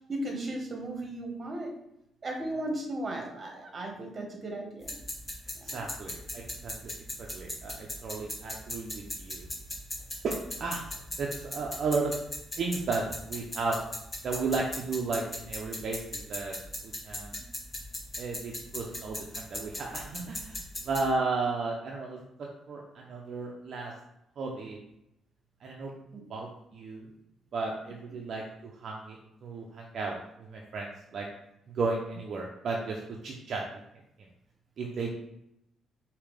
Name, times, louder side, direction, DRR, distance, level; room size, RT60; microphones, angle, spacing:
voice 1, 0.1-1.7 2.2-5.0 5.7-5.9 26.1-26.2, right 1 dB, 35° right, 1 dB, 1.3 m, -36 dB
sound 1, 4.8-21.1, left 1 dB, 20° left, 1.6 m, -39 dB
voice 2, 5.6-6.9 7.2-9.5 10.2-10.8 11.2-12.1 12.6-13.8 14.2-16.5 16.8-17.3 18.2-23.9 24.4-24.8 25.6-26.0 26.3-27.1 27.5-28.4 28.8-31.3 31.7-33.6 34.8-35.1, right 3 dB, 60° right, -1 dB, 0.6 m, -34 dB
4.9 x 2.9 x 3.3 m, 0.82 s
cardioid pair, 90°, 0 cm